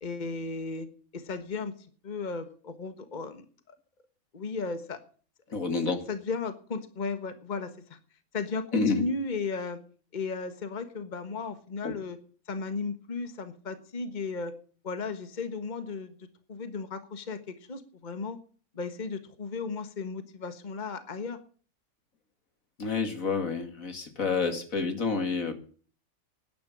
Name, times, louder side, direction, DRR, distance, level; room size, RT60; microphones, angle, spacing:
voice 1, 0.0-0.9 1.1-1.7 2.0-3.7 4.3-5.0 5.5-5.6 6.1-8.0 8.3-9.8 10.1-12.2 12.5-14.5 14.8-18.4 18.7-21.4, left 4 dB, 35° left, 10 dB, 1.5 m, -35 dB
voice 2, 5.5-6.0 8.7-9.0 11.8-11.9 22.8-25.5, left 4 dB, 75° left, 7 dB, 2.6 m, -28 dB
12.0 x 10.5 x 8.5 m, 0.42 s
omnidirectional pair, 1.5 m